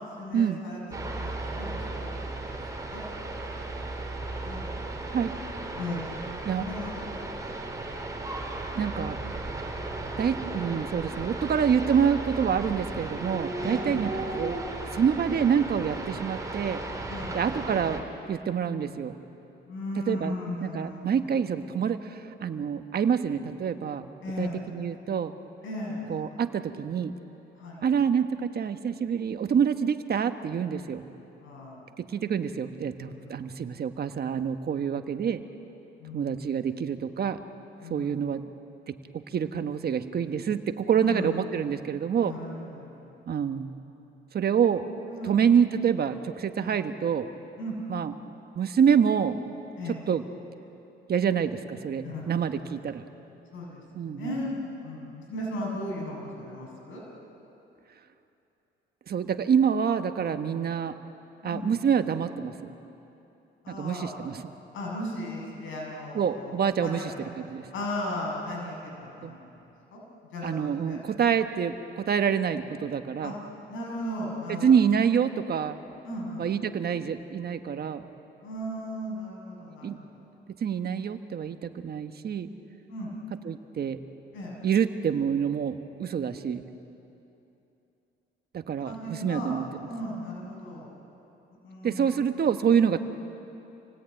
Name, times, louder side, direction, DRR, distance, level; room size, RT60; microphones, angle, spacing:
voice 1, 0.2-0.8 1.1-2.1 2.4-2.6 2.9-3.0 3.5-3.7 4.4-4.8 5.7-6.1 6.6-7.2 8.5-8.6 10.0-10.1 13.6-14.1 17.0-17.4 19.7-21.4 24.2-24.7 25.6-26.1 27.6-27.8 31.4-32.2 33.0-33.6 36.0-36.4 37.8-38.1 41.0-41.3 42.2-43.1 45.1-45.4 46.6-46.8 47.6-47.8 49.8-50.0 52.0-52.7 53.5-57.0 61.4-61.8 63.6-64.2 64.7-67.2 67.7-69.6 69.9-70.0 70.3-70.5 70.8-71.0 73.2-73.4 73.7-74.7 76.0-76.5 78.4-80.2 82.9-83.1 84.3-84.6 88.8-89.6 89.9-90.9 91.6-92.5 92.9-93.0, left 1 dB, 80° left, -2 dB, 6.9 m, -37 dB
sound 1, 0.9-18.0, right 2 dB, 15° right, 3.9 m, -35 dB
voice 2, 8.7-9.2 10.2-14.6 14.9-16.8 17.3-19.2 20.0-20.3 20.6-24.0 24.4-25.3 26.1-27.1 27.8-31.0 32.0-35.4 36.1-37.4 37.9-38.5 38.9-42.3 43.3-43.7 44.3-44.8 45.2-47.3 47.9-48.1 48.5-49.4 50.1-50.2 51.1-53.0 53.9-54.4 59.1-61.0 61.4-62.7 63.7-64.4 66.1-67.0 67.4-67.7 69.2-69.4 70.4-73.3 74.5-75.8 76.4-78.1 79.8-80.0 80.6-82.5 83.4-84.0 84.6-86.7 88.5-89.6 91.8-93.0, right 7 dB, 50° right, 8 dB, 1.4 m, -27 dB
27.5 x 18.0 x 9.1 m, 2.9 s
cardioid pair, 90°, 20 cm